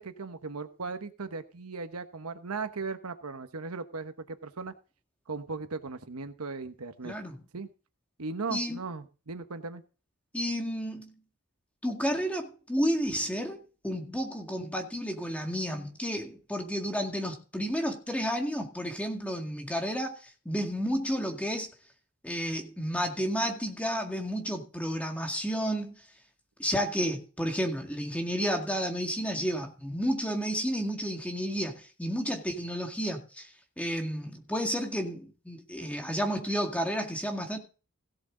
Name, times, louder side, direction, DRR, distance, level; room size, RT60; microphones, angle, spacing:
voice 1, 0.0-4.7 5.3-7.1 7.5-7.7 8.2-9.8, right 4 dB, 80° right, 1.1 m, -37 dB
voice 2, 7.0-7.4 8.5-8.8 10.3-11.1 11.8-21.7 22.2-26.0 26.6-33.5 33.8-37.6, equal, 5° left, 2.0 m, -31 dB
16.5 x 7.8 x 3.8 m
head